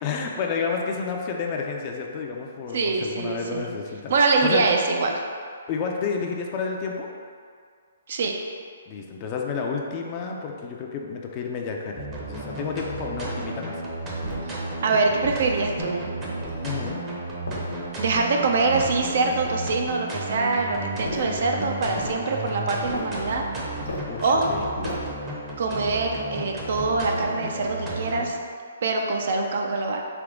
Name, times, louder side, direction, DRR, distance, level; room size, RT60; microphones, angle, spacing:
voice 1, 0.0-4.1 4.4-4.7 5.7-7.1 8.9-13.8 16.6-17.0 24.1-24.7, left 5 dB, 30° left, 1 dB, 0.4 m, -30 dB
voice 2, 2.7-3.7 4.1-5.2 8.1-8.3 14.5-16.1 18.0-23.4 24.2-24.5 25.6-28.4 28.8-30.0, right 3 dB, 60° right, 2 dB, 0.5 m, -24 dB
sound 1, 12.0-28.3, right 1 dB, 20° right, 0.7 m, -33 dB
sound 2, 14.2-14.6 15.2-15.9 16.4-16.9 17.5-18.1 18.7-19.4 21.0-21.4 21.9-22.2 22.8-23.2 23.8-24.2 24.8-25.2, left 1 dB, 85° left, 1.1 m, -36 dB
3.5 x 2.9 x 3.6 m, 2.1 s
hypercardioid pair, 150°, 0 cm